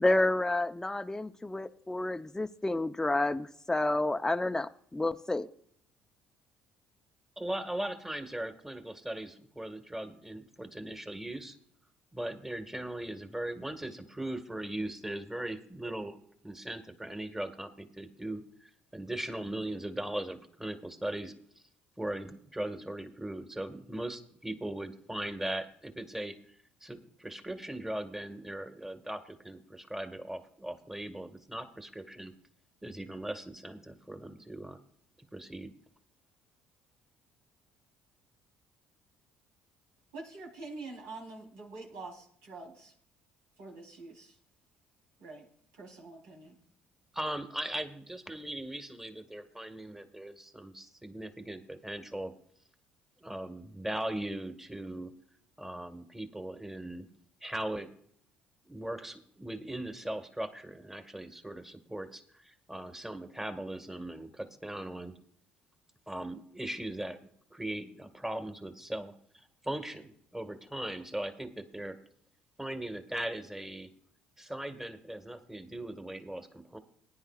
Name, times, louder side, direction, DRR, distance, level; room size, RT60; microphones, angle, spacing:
voice 1, 0.0-5.5, left 2 dB, 10° left, 9 dB, 0.7 m, -30 dB
voice 2, 7.4-11.6 12.1-16.2 16.4-21.3 22.0-26.4 26.8-32.3 32.8-34.8 35.3-35.7 47.1-52.3 53.2-55.1 55.6-57.1 57.4-57.9 58.7-65.1 66.1-67.2 67.5-69.1 69.6-72.0 72.6-73.9 74.4-76.8, right 1 dB, 10° right, 7 dB, 1.6 m, -39 dB
voice 3, 40.1-42.9 43.6-44.4 45.2-45.5 45.7-46.6, right 3 dB, 75° right, -2 dB, 3.6 m, -46 dB
19.5 x 10.0 x 2.4 m, 0.64 s
hypercardioid pair, 60°, 4 cm